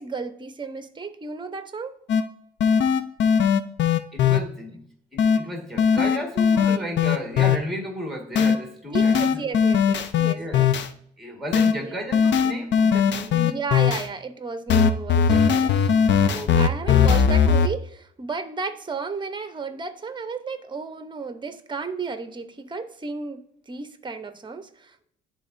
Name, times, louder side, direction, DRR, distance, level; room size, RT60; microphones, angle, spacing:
voice 1, 0.0-2.0 8.9-10.7 11.8-12.0 13.5-25.1, right 4 dB, 25° right, 0.8 m, -33 dB
sound 1, 2.1-2.2 2.6-4.4 5.2-5.4 5.8-7.6 8.4-8.6 8.9-10.9 11.5-11.7 12.1-14.0 14.7-17.7, left 7 dB, 65° left, 0.6 m, -19 dB
voice 2, 4.1-4.9 5.1-9.4 10.3-10.8 11.2-13.6 16.2-16.7, equal, ahead, 1.8 m, -33 dB
11.0 x 3.7 x 2.6 m
cardioid pair, 90°, 20 cm